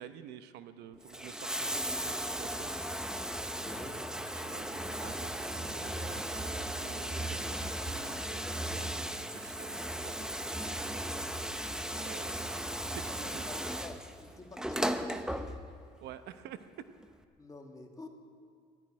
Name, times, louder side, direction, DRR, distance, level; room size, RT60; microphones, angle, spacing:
voice 1, 0.0-2.7 4.3-11.3 12.0-12.4 12.8-13.5 16.0-16.7, right 10 dB, 80° right, 11 dB, 0.8 m, -50 dB
Bathtub (filling or washing), 0.9-15.9 17.0-17.1, right 1 dB, 5° right, 0.7 m, -36 dB
voice 2, 3.6-4.1 13.2-15.3 17.4-18.1, left 2 dB, 20° left, 3 dB, 1.9 m, -48 dB
13.5 x 10.5 x 9.8 m, 2.3 s
cardioid pair, 110°, 17 cm